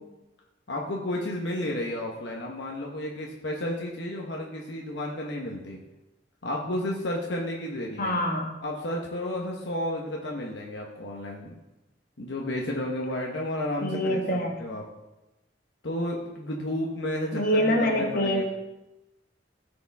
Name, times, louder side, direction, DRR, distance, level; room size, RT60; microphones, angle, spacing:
voice 1, 0.7-5.8 6.4-8.1 8.6-11.5 12.2-14.8 15.8-18.4, left 1 dB, 70° left, -1 dB, 1.1 m, -32 dB
voice 2, 8.0-8.6 13.8-14.6 17.3-18.4, equal, 50° left, 1 dB, 1.5 m, -25 dB
15.5 x 5.2 x 3.5 m, 1.0 s
head